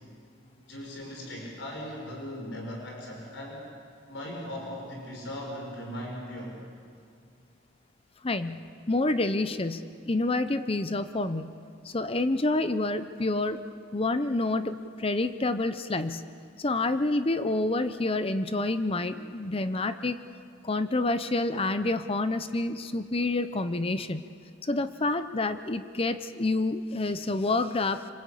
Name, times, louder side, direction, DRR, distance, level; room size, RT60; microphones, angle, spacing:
voice 1, 0.7-3.7 4.1-6.6, left 1 dB, 75° left, 0 dB, 5.4 m, -38 dB
voice 2, 8.2-11.6 11.8-13.6 13.9-16.2 16.6-20.2 20.6-24.2 24.6-28.1, left 2 dB, 30° left, 11 dB, 0.8 m, -28 dB
26.5 x 26.0 x 8.5 m, 2.2 s
head